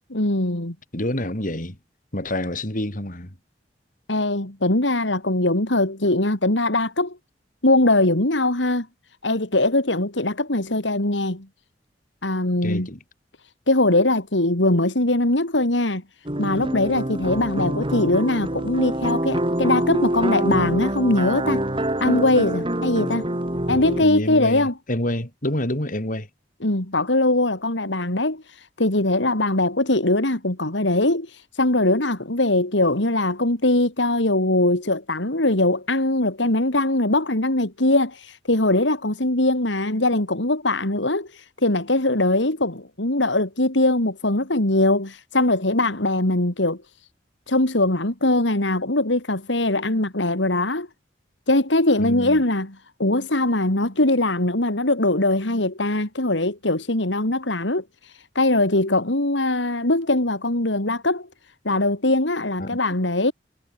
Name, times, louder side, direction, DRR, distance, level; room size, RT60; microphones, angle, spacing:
voice 1, 0.1-0.8 4.1-7.2 7.6-8.9 9.2-11.5 12.2-12.9 13.7-16.0 16.4-21.6 22.0-23.3 23.7-24.7 26.6-28.4 28.8-31.3 31.6-41.3 41.6-46.8 47.5-50.9 51.5-57.8 58.4-61.3 61.7-63.3, left 2 dB, 80° left, 3.6 m, -21 dB
voice 2, 0.9-1.8 2.1-3.3 12.6-13.0 23.7-26.3 52.0-52.4 62.6-62.8, left 1 dB, 45° left, 5.3 m, -28 dB
sound 1, 16.3-24.0, right 1 dB, 30° right, 5.4 m, -25 dB
head